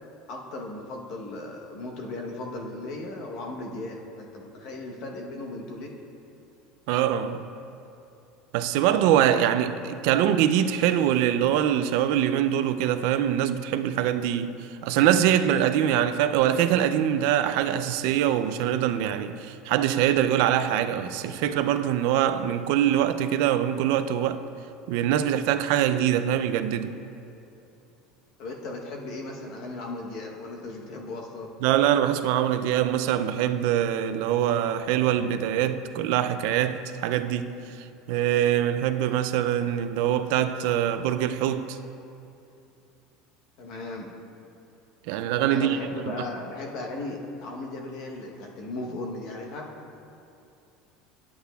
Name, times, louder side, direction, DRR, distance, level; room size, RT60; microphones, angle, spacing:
voice 1, 0.3-5.9 28.4-31.5 43.6-44.2 45.5-49.7, left 2 dB, 45° left, 0.9 m, -36 dB
voice 2, 6.9-7.5 8.5-24.4 24.9-27.0 31.6-37.6 38.1-41.8 45.1-45.8 46.1-46.2, right 10 dB, 60° right, 0.3 m, -24 dB
11.0 x 8.2 x 2.3 m
cardioid pair, 180°, 0 cm